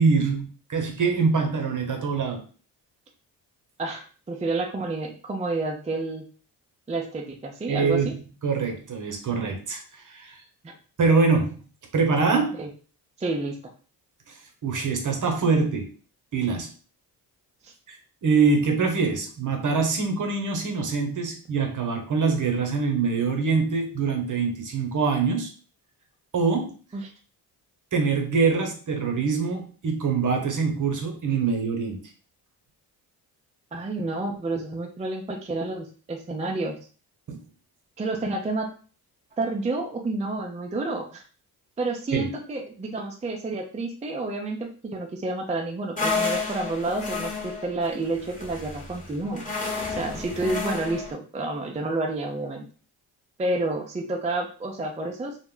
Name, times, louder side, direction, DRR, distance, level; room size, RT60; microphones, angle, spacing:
voice 1, 0.0-2.4 7.7-10.4 11.0-11.6 11.9-12.6 14.3-14.4 14.6-15.9 16.3-16.7 17.9-18.0 18.2-25.5 26.3-26.7 27.9-32.0 37.3-37.4 42.1-42.3, right 4 dB, 50° right, 4 dB, 0.9 m, -24 dB
voice 2, 3.8-6.2 6.9-8.1 10.6-10.7 12.6-12.7 13.2-13.6 17.6-17.7 26.9-27.1 33.7-36.8 38.0-38.7 39.4-41.2 41.8-49.5 49.9-52.7 53.4-55.4, right 2 dB, 15° right, 2 dB, 0.4 m, -30 dB
sound 1, 46.0-51.1, left 4 dB, 20° left, 1.0 m, -31 dB
2.1 x 2.0 x 3.7 m, 0.39 s
cardioid pair, 60°, 41 cm